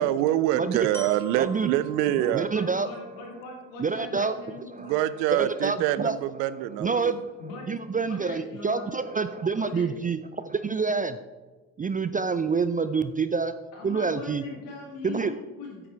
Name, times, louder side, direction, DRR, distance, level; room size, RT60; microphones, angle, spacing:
voice 1, 0.0-2.5 4.8-7.2, right 13 dB, 75° right, 16 dB, 0.6 m, -25 dB
Glockenspiel, 0.9-4.9, right 3 dB, 5° left, 2.0 m, -48 dB
voice 2, 1.4-1.7 2.3-2.9 3.8-4.4 4.7-4.9 5.3-6.1 6.8-7.3 7.7-11.2 11.8-13.5 13.8-14.4 15.0-15.3, right 5 dB, 20° right, 11 dB, 0.4 m, -27 dB
voice 3, 2.0-5.0 7.4-7.7 8.0-8.9 9.5-9.9 13.7-15.9, left 3 dB, 75° left, -1 dB, 2.6 m, -41 dB
8.8 x 7.9 x 4.6 m, 1.3 s
hypercardioid pair, 45°, 49 cm